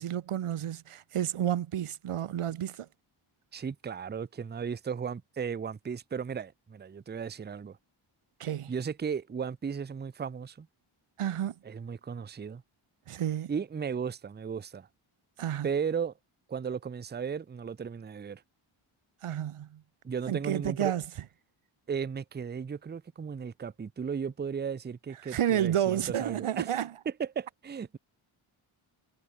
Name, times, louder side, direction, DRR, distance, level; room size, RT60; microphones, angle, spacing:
voice 1, 0.0-2.9 8.4-8.7 11.2-11.5 13.1-13.5 15.4-15.7 19.2-19.8 20.3-21.0 25.2-26.9, right 10 dB, 85° right, 1.3 m, -30 dB
voice 2, 3.5-7.8 8.7-10.7 11.6-12.6 13.5-14.9 15.6-16.1 16.5-18.4 20.0-20.9 21.9-26.7 27.1-28.0, right 6 dB, 20° right, 0.5 m, -35 dB
wide cardioid pair, 155°, 50 cm